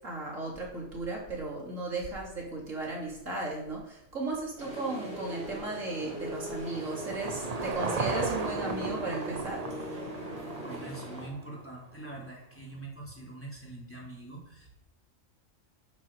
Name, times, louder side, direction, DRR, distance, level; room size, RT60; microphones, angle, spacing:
voice 1, 0.0-9.7, right 2 dB, 75° right, -2 dB, 3.6 m, -35 dB
sound 1, 4.6-11.3, equal, 55° right, 4.4 m, -41 dB
Car passing by / Engine, 5.4-11.8, right 4 dB, 35° right, 1.0 m, -36 dB
voice 2, 10.6-14.8, right 2 dB, 10° left, -3 dB, 3.6 m, -44 dB
12.0 x 11.0 x 5.0 m, 0.81 s
omnidirectional pair, 1.3 m